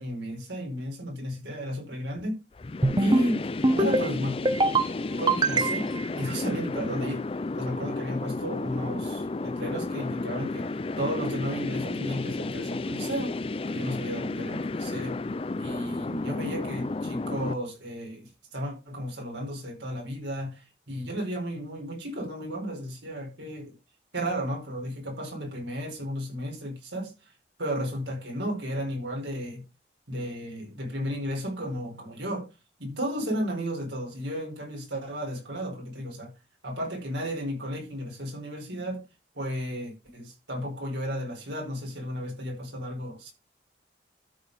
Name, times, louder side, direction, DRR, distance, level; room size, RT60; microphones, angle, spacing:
voice 1, 0.0-2.4 3.0-4.4 5.2-5.8 6.2-7.2 7.5-13.3 13.7-15.2 15.6-23.7 24.1-27.1 27.6-29.6 30.1-32.5 32.8-36.3 36.6-39.0 39.3-43.3, equal, 75° right, 4.8 m, -33 dB
sound 1, 2.6-17.5, left 3 dB, 30° left, 0.4 m, -32 dB
sound 2, 2.8-3.3 3.6-4.1 4.5-4.9 5.3-6.0, right 2 dB, 25° right, 0.8 m, -23 dB
12.5 x 4.6 x 4.9 m
head